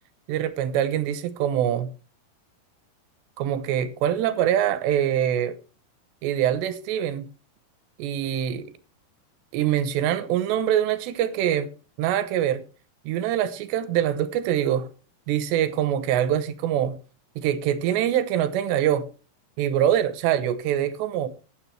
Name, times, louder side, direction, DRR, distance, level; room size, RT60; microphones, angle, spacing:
voice 1, 0.3-1.9 3.4-5.5 6.2-7.3 8.0-8.7 9.5-11.7 12.0-12.6 13.1-14.9 15.3-17.0 17.4-19.1 19.6-21.3, right 10 dB, 80° right, 3.1 m, -24 dB
15.5 x 9.7 x 3.2 m
omnidirectional pair, 5.1 m